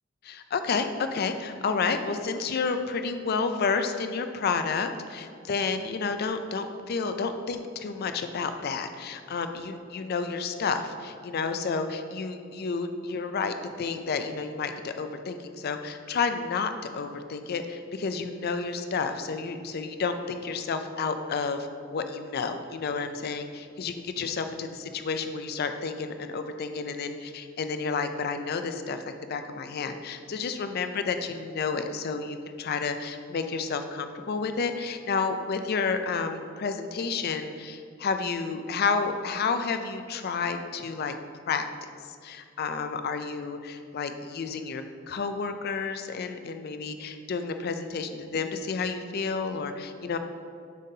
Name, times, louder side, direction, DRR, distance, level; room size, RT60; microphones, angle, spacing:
voice 1, 0.2-29.0 29.3-41.2 41.5-41.7 42.2-50.2, left 5 dB, 50° left, 8 dB, 0.4 m, -30 dB
7.3 x 5.6 x 2.7 m, 2.3 s
head